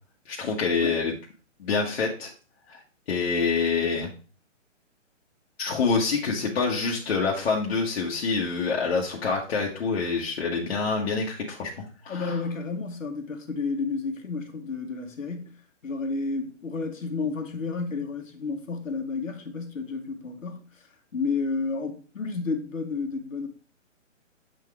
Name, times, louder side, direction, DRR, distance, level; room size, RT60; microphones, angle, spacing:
voice 1, 0.2-1.1 1.6-2.3 2.7-2.8 3.1-4.1 5.6-12.4, left 4 dB, 55° left, 1.3 m, -26 dB
voice 2, 12.1-15.6 15.8-20.9 21.1-23.5, left 4 dB, 90° left, 1.7 m, -31 dB
7.3 x 3.9 x 3.5 m
hypercardioid pair, 155°, 38 cm